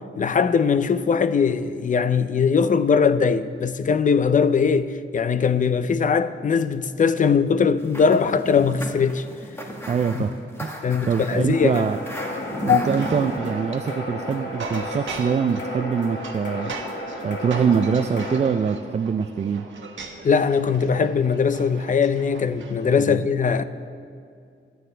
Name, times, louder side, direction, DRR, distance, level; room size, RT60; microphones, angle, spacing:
voice 1, 0.2-9.2 10.1-10.2 10.8-11.8 12.7-12.8 20.2-23.6, left 6 dB, 40° left, 0.5 m, -20 dB
sound 1, 7.8-13.4, equal, 10° left, 1.6 m, -35 dB
voice 2, 9.9-10.3 10.6-10.7 11.1-12.0 12.6-16.7 17.2-19.6 23.0-23.2, right 6 dB, 35° right, 0.4 m, -24 dB
sound 2, 11.5-18.4, left 1 dB, 60° left, 2.1 m, -33 dB
sound 3, 13.0-23.0, right 4 dB, 65° right, 1.3 m, -38 dB
24.0 x 9.4 x 3.4 m
wide cardioid pair, 130°, 21 cm